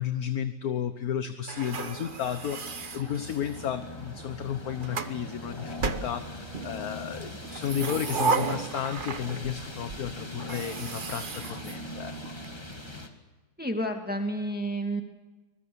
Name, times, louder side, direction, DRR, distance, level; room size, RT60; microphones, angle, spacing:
voice 1, 0.0-12.3, left 9 dB, 55° left, 9 dB, 1.5 m, -33 dB
sound 1, 1.5-3.8 4.5-5.2 5.8-6.7 7.4-9.6 9.9-10.0 10.4-12.5, right 4 dB, 35° right, 0.9 m, -33 dB
sound 2, 1.7-13.1, left 1 dB, 15° left, 2.0 m, -41 dB
sound 3, 3.1-3.2 3.4-12.6, right 2 dB, 85° right, 2.4 m, -54 dB
voice 2, 13.6-15.0, right 1 dB, 5° right, 4 dB, 2.0 m, -30 dB
25.0 x 21.0 x 7.0 m, 1.2 s
omnidirectional pair, 2.0 m